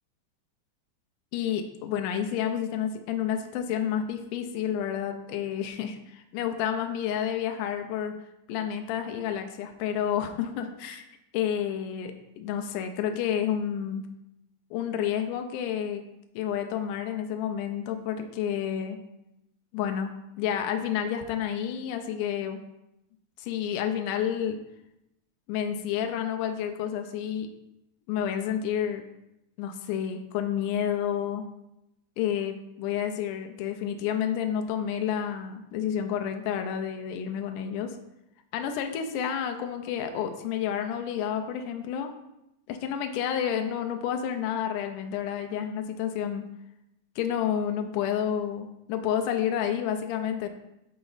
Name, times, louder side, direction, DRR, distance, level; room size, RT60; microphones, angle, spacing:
voice 1, 1.3-8.1 8.5-11.1 11.3-14.0 14.7-16.0 16.4-19.0 19.7-20.1 20.4-22.6 23.4-24.6 25.5-27.5 28.1-29.0 29.6-31.4 32.2-37.9 38.5-42.1 42.7-46.5 47.2-50.5, left 9 dB, 80° left, 5 dB, 1.9 m, -30 dB
8.1 x 4.3 x 3.9 m, 0.87 s
omnidirectional pair, 4.3 m